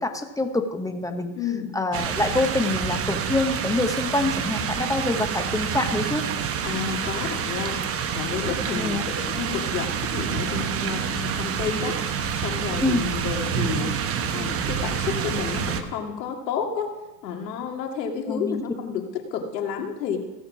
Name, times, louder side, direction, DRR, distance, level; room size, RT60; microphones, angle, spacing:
voice 1, 0.0-1.3 1.7-6.3 8.7-9.0 12.8-13.0 18.3-18.6, left 2 dB, 5° left, 6 dB, 0.9 m, -25 dB
voice 2, 1.3-1.7 6.6-7.8 8.1-12.0 12.3-13.9 14.3-17.0 17.2-20.2, left 6 dB, 80° left, 3 dB, 2.2 m, -30 dB
sound 1, 1.9-15.8, right 7 dB, 30° right, 0.9 m, -28 dB
16.0 x 6.6 x 6.0 m, 1.1 s
hypercardioid pair, 115°, 49 cm